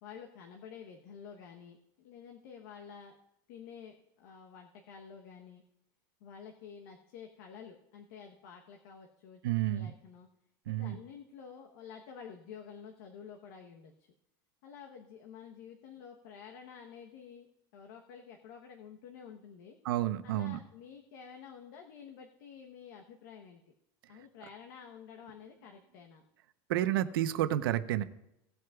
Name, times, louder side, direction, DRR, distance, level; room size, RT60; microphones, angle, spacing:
voice 1, 0.0-3.2 3.5-5.6 6.2-9.4 9.7-10.3 10.7-14.1 14.6-19.8 20.2-23.7 24.1-26.2, left 7 dB, 60° left, 3 dB, 1.0 m, -50 dB
voice 2, 9.4-9.9 10.7-11.0 19.8-20.6 26.7-28.0, right 13 dB, 85° right, 11 dB, 0.8 m, -30 dB
18.0 x 7.8 x 2.4 m, 0.84 s
supercardioid pair, 180°, 12 cm